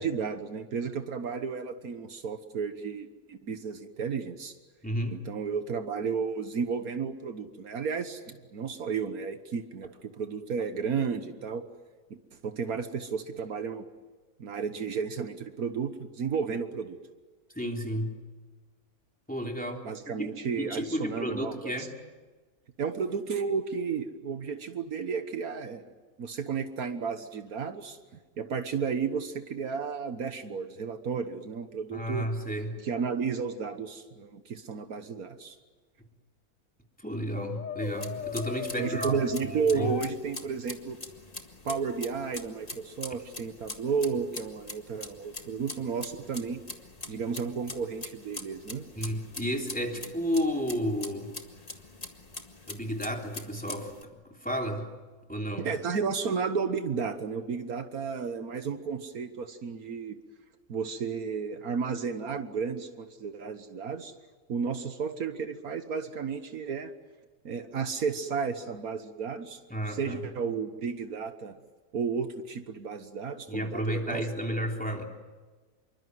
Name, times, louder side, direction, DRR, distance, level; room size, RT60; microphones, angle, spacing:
voice 1, 0.0-4.6 5.1-11.6 12.1-12.2 12.4-13.9 14.4-17.0 19.8-21.9 22.8-25.8 26.2-28.0 28.4-32.3 32.8-35.5 38.8-41.0 41.6-46.6 47.1-48.8 55.6-60.2 60.7-64.1 64.5-66.9 67.4-69.6 69.9-71.6 71.9-74.2, right 5 dB, 70° right, 9 dB, 1.7 m, -33 dB
voice 2, 4.8-5.2 17.5-18.1 19.3-19.8 20.2-20.3 20.6-21.9 31.9-32.8 37.0-39.9 49.0-51.3 52.7-54.9 55.3-55.7 69.7-70.2 73.5-75.0, equal, 5° left, 1 dB, 3.3 m, -32 dB
Brass instrument, 37.4-40.1 41.7-42.2, left 7 dB, 60° left, 1.5 m, -38 dB
sound 1, 37.8-54.0, left 2 dB, 25° left, 1.8 m, -44 dB
27.0 x 24.0 x 7.9 m, 1.3 s
omnidirectional pair, 1.6 m